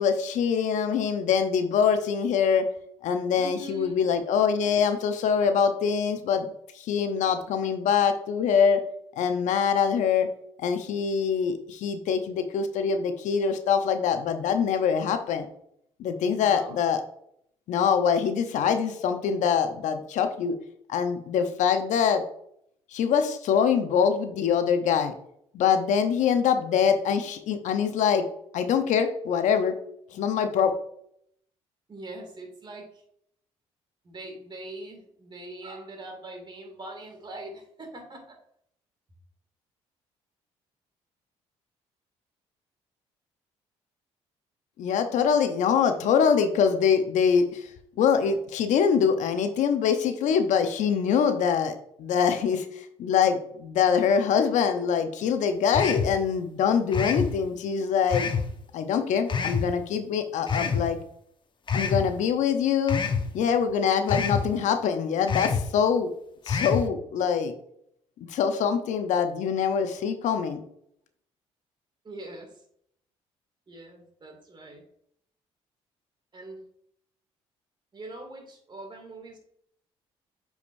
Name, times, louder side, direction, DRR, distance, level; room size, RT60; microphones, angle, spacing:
voice 1, 0.0-2.7 3.0-6.5 6.7-8.8 9.2-10.3 10.6-15.5 16.0-17.0 17.7-20.5 20.9-22.2 22.9-25.1 25.5-28.2 28.5-29.7 30.1-30.7 44.8-47.7 48.0-51.7 52.0-58.3 58.7-61.0 61.7-63.0 63.3-66.1 66.4-67.5 68.3-70.6, left 7 dB, 70° left, 8 dB, 0.8 m, -24 dB
voice 2, 3.4-4.0 16.3-16.8 31.9-33.0 34.0-38.4 63.4-63.5 72.0-72.5 73.7-74.8 76.3-76.6 77.9-79.4, right 1 dB, 35° right, 3 dB, 2.5 m, -42 dB
sound 1, 55.7-56.1 56.9-57.3 58.1-58.5 59.3-59.7 60.5-60.8 61.7-62.0 62.9-63.2 64.1-64.4 65.3-65.6 66.5-66.8, left 6 dB, 40° left, 0.9 m, -26 dB
8.3 x 5.0 x 2.7 m, 0.69 s
supercardioid pair, 65°, 13 cm